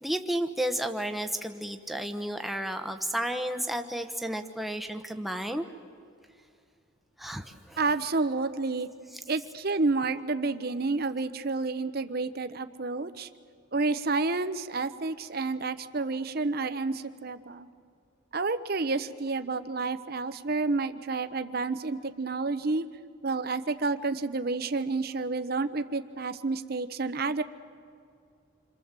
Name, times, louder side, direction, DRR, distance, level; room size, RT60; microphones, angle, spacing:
voice 1, 0.0-5.6 7.2-7.4 7.7-7.8, right 1 dB, ahead, 5 dB, 1.0 m, -32 dB
voice 2, 7.8-8.9 9.3-13.3 13.7-17.7 18.3-22.8 23.2-27.4, right 3 dB, 45° right, 11 dB, 0.8 m, -30 dB
28.0 x 25.5 x 7.5 m, 2.3 s
head